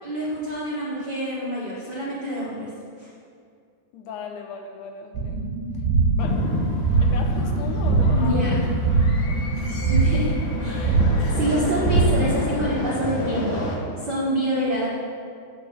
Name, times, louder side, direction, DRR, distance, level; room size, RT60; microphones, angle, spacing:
voice 1, 0.0-2.7 3.0-3.1 8.1-8.6 9.9-11.0 11.3-13.6 14.0-14.9, equal, 50° right, -8 dB, 1.2 m, -27 dB
voice 2, 3.9-5.4 6.2-6.4 7.0-8.4 9.3-9.4, left 5 dB, 80° left, 3 dB, 2.2 m, -37 dB
sound 1, 5.1-12.5, right 3 dB, 75° right, 1.6 m, -22 dB
sound 2, 6.2-13.7, left 1 dB, 55° left, 1.4 m, -28 dB
8.5 x 5.2 x 6.2 m, 2.3 s
omnidirectional pair, 3.8 m